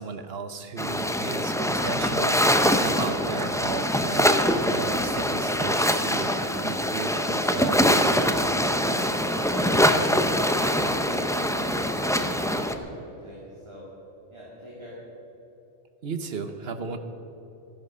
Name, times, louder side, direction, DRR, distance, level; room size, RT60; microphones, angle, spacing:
voice 1, 0.0-6.3 6.6-8.4 16.0-17.0, right 5 dB, 55° right, 8 dB, 1.1 m, -35 dB
sound 1, 0.8-12.7, equal, 5° left, 0.3 m, -23 dB
voice 2, 8.8-13.8 14.3-15.0, equal, 25° right, -6 dB, 2.4 m, -42 dB
14.0 x 10.5 x 6.3 m, 3.0 s
omnidirectional pair, 1.2 m